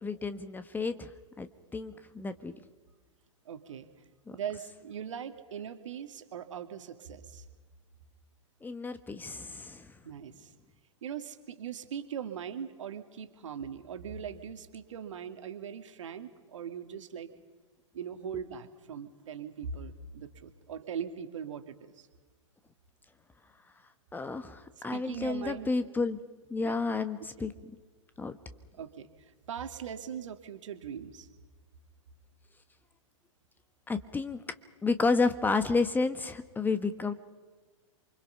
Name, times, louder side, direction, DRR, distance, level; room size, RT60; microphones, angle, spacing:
voice 1, 0.0-1.1 1.4-2.6 4.3-4.4 8.6-10.0 18.3-18.4 24.1-26.2 26.5-27.5 28.2-28.4 33.9-34.4 34.8-37.1, left 4 dB, 10° left, 10 dB, 1.2 m, -31 dB
voice 2, 3.5-3.9 4.3-7.5 10.0-10.5 11.0-17.3 17.9-22.1 24.9-25.7 26.6-26.8 27.4-27.5 28.8-31.3, right 8 dB, 70° right, 8 dB, 2.2 m, -40 dB
27.5 x 25.0 x 5.7 m, 1.3 s
hypercardioid pair, 105°, 17 cm